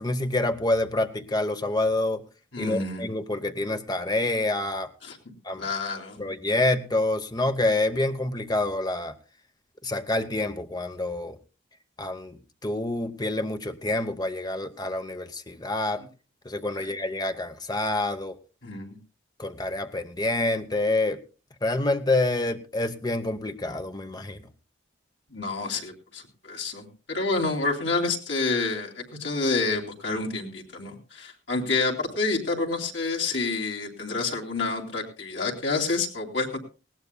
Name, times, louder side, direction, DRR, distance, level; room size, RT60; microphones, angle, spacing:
voice 1, 0.0-2.2 2.6-4.9 5.4-5.6 6.2-9.1 9.8-11.4 12.0-16.0 16.4-18.4 19.4-21.2 21.6-24.5, left 2 dB, 20° left, 8 dB, 0.9 m, -27 dB
voice 2, 2.5-3.1 5.0-5.2 5.6-6.2 16.7-16.9 18.6-19.0 25.3-36.6, left 3 dB, 80° left, 1 dB, 3.0 m, -28 dB
19.5 x 17.0 x 2.2 m, 0.34 s
head